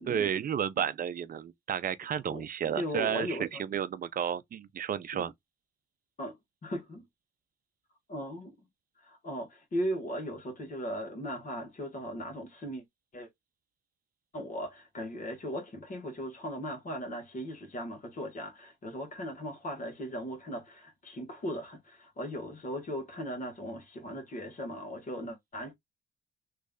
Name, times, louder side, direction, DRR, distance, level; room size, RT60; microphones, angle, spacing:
voice 1, 0.1-5.3, right 8 dB, 45° right, 0.5 m, -32 dB
voice 2, 2.7-3.6 5.1-5.3 6.2-7.0 8.1-8.7 9.0-12.8 13.1-13.3 14.3-25.7, equal, 40° left, 1.4 m, -38 dB
3.2 x 2.5 x 3.6 m
cardioid pair, 90°, 20 cm